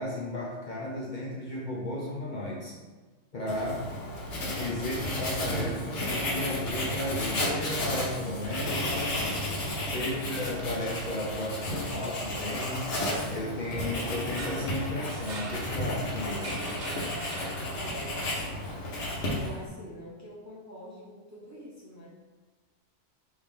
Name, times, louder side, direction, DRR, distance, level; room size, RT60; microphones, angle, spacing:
voice 1, 0.0-2.8 3.3-3.8 4.6-9.2 9.7-12.8 13.3-16.6, left 1 dB, 50° left, -5 dB, 0.7 m, -34 dB
Writing, 3.5-19.7, left 1 dB, 70° left, 1.2 m, -33 dB
voice 2, 3.9-4.3 9.9-10.6 17.0-22.1, right 1 dB, 15° right, -7 dB, 0.7 m, -47 dB
sound 1, 14.4-18.1, right 2 dB, 60° right, 0.9 m, -42 dB
4.8 x 2.7 x 3.6 m, 1.3 s
omnidirectional pair, 1.2 m